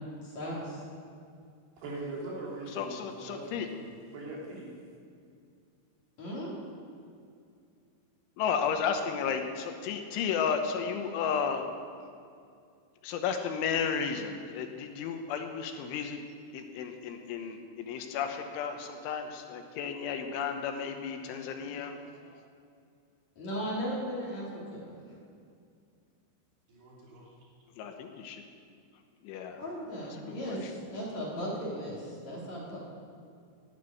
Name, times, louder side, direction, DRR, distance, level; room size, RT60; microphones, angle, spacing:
voice 1, 0.2-0.8 6.2-6.5 23.4-25.0 29.6-32.8, equal, 40° left, -5 dB, 3.2 m, -36 dB
voice 2, 1.8-4.8 26.7-27.3, right 2 dB, 60° right, -4 dB, 4.8 m, -42 dB
voice 3, 2.8-3.7 8.4-11.7 13.0-16.2 16.5-22.0 22.3-22.4 27.8-28.4 29.2-29.6 30.2-30.7, left 7 dB, 80° left, 5 dB, 3.3 m, -33 dB
11.5 x 11.5 x 9.2 m, 2.4 s
omnidirectional pair, 5.7 m